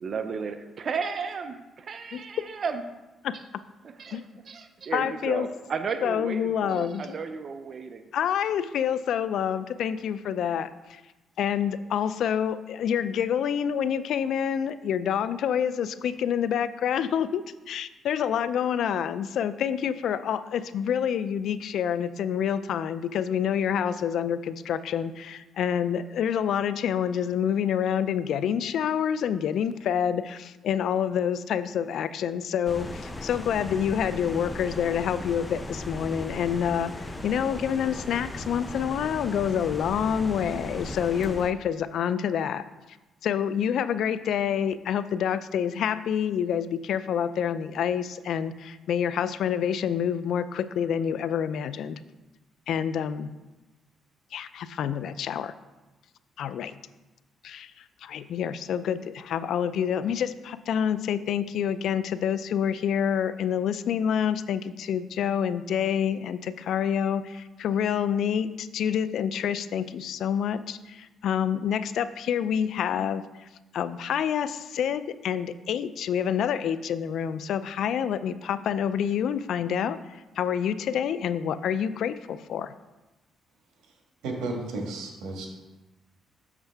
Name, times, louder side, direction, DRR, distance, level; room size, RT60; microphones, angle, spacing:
voice 1, 0.0-2.8 4.0-4.2 4.5-8.1, right 5 dB, 50° right, 8 dB, 0.5 m, -33 dB
voice 2, 4.9-5.5 6.0-7.2 8.1-11.0 11.4-43.0 43.2-52.0 52.7-53.4 54.3-55.5 56.4-56.7 57.4-73.5 73.7-82.7, left 8 dB, 70° left, 14 dB, 0.3 m, -27 dB
sound 1, 32.7-41.5, left 1 dB, 20° left, 0.6 m, -37 dB
voice 3, 84.2-85.5, right 2 dB, 90° right, 1 dB, 1.5 m, -33 dB
7.2 x 6.4 x 3.4 m, 1.1 s
cardioid pair, 90°, 0 cm